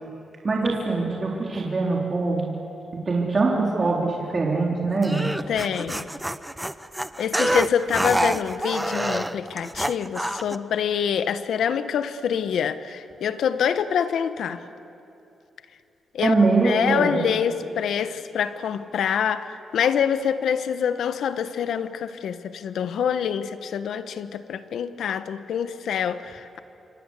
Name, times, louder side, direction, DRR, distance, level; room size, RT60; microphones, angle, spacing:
voice 1, 0.4-2.5 3.1-5.3 16.2-17.3, right 3 dB, 40° right, -2 dB, 3.9 m, -23 dB
sound 1, 5.0-10.6, right 1 dB, 10° right, 0.8 m, -27 dB
voice 2, 5.5-6.1 7.2-14.6 16.1-16.3 16.6-26.6, left 8 dB, 80° left, 11 dB, 1.1 m, -26 dB
27.0 x 24.0 x 8.3 m, 2.8 s
cardioid pair, 80°, 0 cm